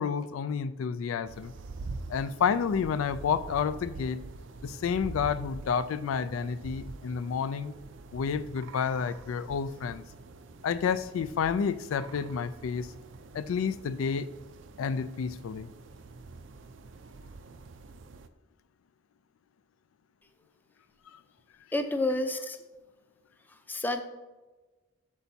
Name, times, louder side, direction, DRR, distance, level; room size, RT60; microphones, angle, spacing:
voice 1, 0.0-1.5 2.1-4.2 4.6-7.7 8.1-10.0 10.6-12.9 13.3-14.3 14.8-15.7, left 6 dB, 85° left, 0.3 m, -30 dB
sound 1, 1.2-18.3, right 3 dB, 65° right, 0.4 m, -45 dB
voice 2, 21.7-22.6 23.5-24.0, left 2 dB, 10° left, 0.5 m, -30 dB
8.3 x 6.9 x 2.8 m
head